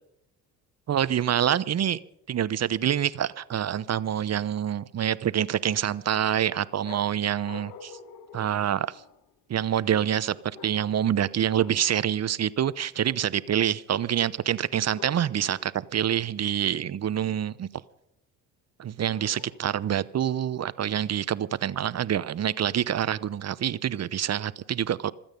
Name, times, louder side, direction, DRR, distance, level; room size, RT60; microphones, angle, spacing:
voice 1, 0.9-2.0 2.3-7.9 8.3-8.9 9.5-10.3 10.6-17.7 18.8-25.1, right 10 dB, 40° right, 0.9 m, -26 dB
sound 1, 6.8-9.3 10.5-11.1 11.5-12.0 14.9-15.6 19.1-19.9, left 6 dB, 70° left, 1.5 m, -47 dB
26.5 x 8.9 x 5.3 m
hypercardioid pair, 60°, 38 cm